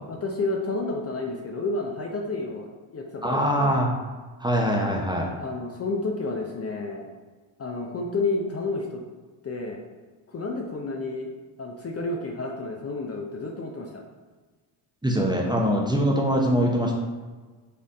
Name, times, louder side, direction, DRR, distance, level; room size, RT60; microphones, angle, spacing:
voice 1, 0.1-3.8 5.4-7.1 7.6-9.0 9.4-9.8 10.3-11.3 11.6-14.0, left 3 dB, 30° left, 1 dB, 0.6 m, -30 dB
voice 2, 3.2-3.9 4.4-5.3 15.0-16.9, equal, 10° right, -1 dB, 0.6 m, -23 dB
4.3 x 2.6 x 3.6 m, 1.4 s
supercardioid pair, 70°, 50 cm